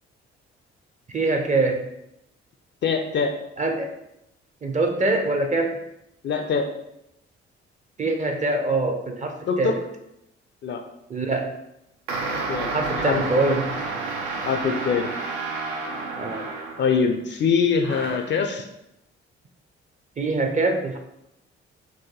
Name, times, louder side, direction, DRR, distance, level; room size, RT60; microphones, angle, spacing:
voice 1, 1.1-1.9 3.6-3.9 4.6-5.8 8.0-9.8 11.1-11.5 12.7-13.9 16.2-16.5 20.2-21.0, right 2 dB, 25° right, 4 dB, 0.5 m, -24 dB
voice 2, 2.8-3.3 6.2-6.7 9.5-9.7 10.6-10.8 12.5-13.2 14.5-15.1 16.8-18.7, left 5 dB, 35° left, 5 dB, 0.4 m, -23 dB
sound 1, 12.1-17.1 17.8-18.4, right 3 dB, 75° right, 0.5 m, -30 dB
2.7 x 2.6 x 3.7 m, 0.83 s
figure-of-eight pair, 40°, 32 cm